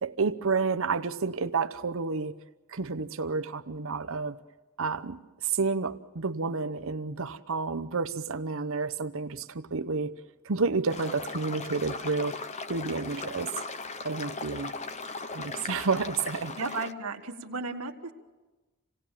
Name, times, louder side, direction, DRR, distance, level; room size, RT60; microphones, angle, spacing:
voice 1, 0.0-2.3 2.7-4.4 4.8-10.2 10.4-12.4 12.7-13.5 14.0-14.7 15.3-16.6, right 4 dB, 65° right, 0.8 m, -30 dB
sound 1, 10.9-16.9, left 4 dB, 30° left, 0.8 m, -38 dB
voice 2, 16.6-18.1, right 3 dB, 80° right, 1.6 m, -34 dB
27.5 x 18.0 x 7.5 m
head